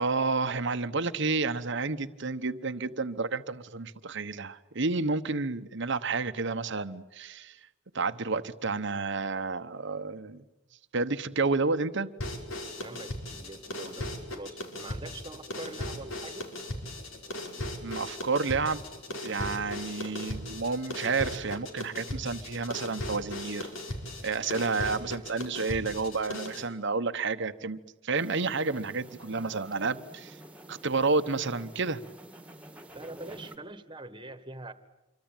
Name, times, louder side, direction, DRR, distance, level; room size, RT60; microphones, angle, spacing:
voice 1, 0.0-7.6 7.9-10.4 10.9-12.1 17.8-18.8 19.2-23.7 24.2-27.8 28.0-30.3 30.7-32.0, right 4 dB, 60° right, 1.0 m, -30 dB
sound 1, 12.2-26.7, left 1 dB, 80° left, 5.2 m, -38 dB
voice 2, 12.8-16.5 32.9-34.7, right 2 dB, 25° right, 1.6 m, -44 dB
sound 2, 28.1-33.6, right 1 dB, 5° right, 2.0 m, -49 dB
27.0 x 24.0 x 9.1 m
head